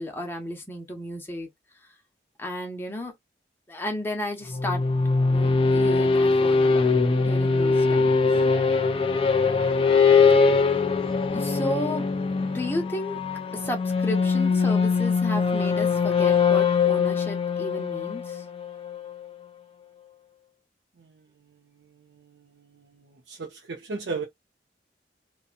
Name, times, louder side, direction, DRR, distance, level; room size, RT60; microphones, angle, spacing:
voice 1, 0.0-1.5 2.4-3.1 3.7-4.8 5.3-6.9 7.2-8.2 11.3-12.1 12.4-13.2 13.5-18.4, left 1 dB, 15° left, 0.7 m, -33 dB
sound 1, 4.5-19.1, left 4 dB, 30° left, 0.4 m, -22 dB
voice 2, 23.3-24.2, right 4 dB, 90° right, 0.6 m, -33 dB
2.6 x 2.2 x 2.4 m
head